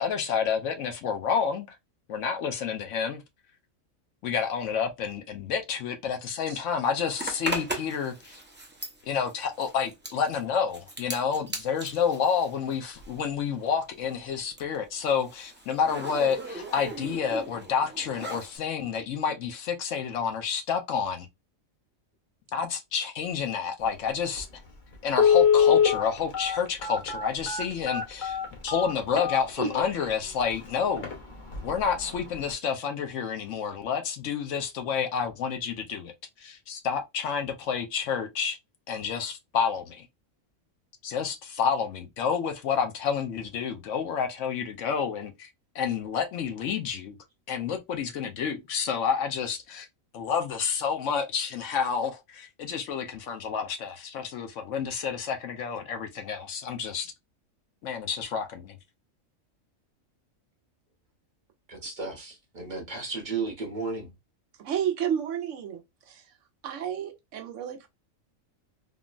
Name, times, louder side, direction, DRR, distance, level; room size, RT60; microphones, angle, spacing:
voice 1, 0.0-1.7 2.1-3.2 4.2-8.4 9.0-21.3 22.5-24.5 25.0-31.1 31.6-36.1 36.4-38.6 38.9-40.1 41.0-45.5 45.7-47.2 47.5-49.9 50.1-57.1 57.8-58.8, left 6 dB, 70° left, 1.0 m, -29 dB
Zipper (clothing), 7.2-13.3 13.6-18.6, right 2 dB, 15° right, 0.4 m, -38 dB
Telephone, 24.4-24.5 25.1-30.0 30.5-30.6 31.0-31.1 31.5-31.8 32.1-32.2, left 7 dB, 40° left, 0.9 m, -23 dB
voice 2, 61.7-64.1, right 4 dB, 40° right, 0.8 m, -34 dB
voice 3, 64.6-66.3 66.6-67.9, right 9 dB, 70° right, 0.9 m, -31 dB
3.7 x 2.0 x 2.4 m
omnidirectional pair, 1.4 m